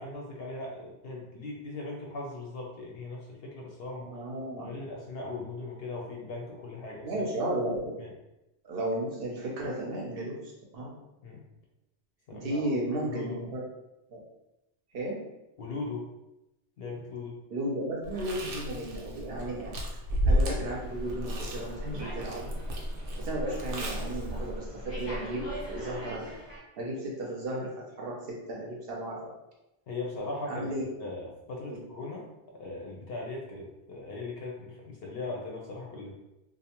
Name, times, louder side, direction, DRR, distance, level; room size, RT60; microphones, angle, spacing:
voice 1, 0.0-4.1 4.6-7.2 8.0-8.1 11.2-11.4 12.3-12.7 13.1-13.4 15.6-16.0 16.8-17.4 29.9-30.7 31.0-32.2 32.5-36.2, left 2 dB, 65° left, -1 dB, 0.7 m, -39 dB
voice 2, 4.0-4.8 7.0-8.0 8.6-10.9 12.3-13.6 14.1-14.2 14.9-15.2 17.5-19.8 20.2-22.6 23.2-26.3 26.8-29.3 30.5-30.8 31.6-31.8, right 1 dB, 60° right, -2 dB, 0.7 m, -34 dB
Chewing mastication, 18.0-24.6, equal, 90° right, 0.9 m, -33 dB
Slam, 20.5-26.6, equal, 15° left, 0.7 m, -39 dB
2.6 x 2.1 x 2.8 m, 0.93 s
omnidirectional pair, 1.2 m